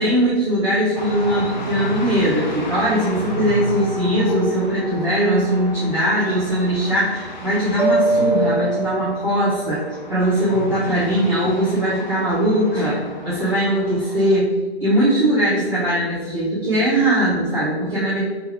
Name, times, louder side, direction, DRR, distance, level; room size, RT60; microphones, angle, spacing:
voice 1, 0.0-14.5 14.8-18.2, right 1 dB, 25° right, -13 dB, 1.0 m, -20 dB
sound 1, 0.9-14.4, left 1 dB, 40° left, 0.5 m, -33 dB
Mallet percussion, 7.8-9.8, right 3 dB, 70° right, 0.6 m, -22 dB
3.3 x 3.2 x 3.7 m, 1.3 s
hypercardioid pair, 175°, 34 cm